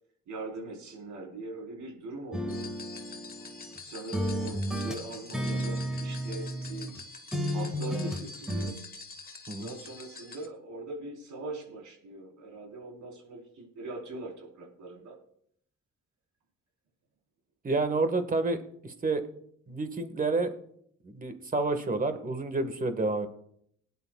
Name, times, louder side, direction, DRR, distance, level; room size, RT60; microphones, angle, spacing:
voice 1, 0.3-2.6 3.8-6.9 7.5-8.8 9.5-15.2, right 2 dB, 75° right, 0 dB, 4.0 m, -41 dB
sound 1, 2.3-3.8 4.1-7.0 7.3-8.7, equal, ahead, 1.7 m, -33 dB
sound 2, 2.5-10.5, left 4 dB, 30° left, 1.4 m, -46 dB
voice 2, 17.6-18.6 18.8-19.2 19.7-20.5 21.0-23.3, right 3 dB, 25° right, 8 dB, 1.5 m, -29 dB
20.0 x 9.9 x 2.3 m, 0.69 s
cardioid pair, 90°, 30 cm